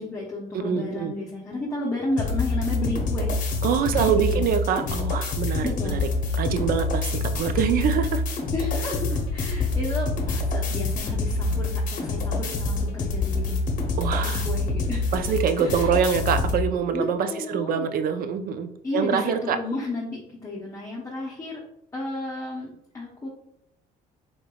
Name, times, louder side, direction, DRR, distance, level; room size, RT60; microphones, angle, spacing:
voice 1, 0.0-3.3 3.9-4.5 5.6-6.0 8.5-13.6 14.2-15.1 15.6-15.9 16.9-17.9 18.8-21.6 21.9-23.3, left 2 dB, 20° left, -5 dB, 0.7 m, -32 dB
voice 2, 0.5-1.1 3.6-6.1 6.3-8.2 14.0-14.5 15.1-19.6, right 7 dB, 60° right, 9 dB, 0.4 m, -25 dB
sound 1, 2.2-16.6, left 3 dB, 50° left, 0.8 m, -26 dB
3.8 x 3.4 x 2.3 m, 0.76 s
cardioid pair, 110°, 17 cm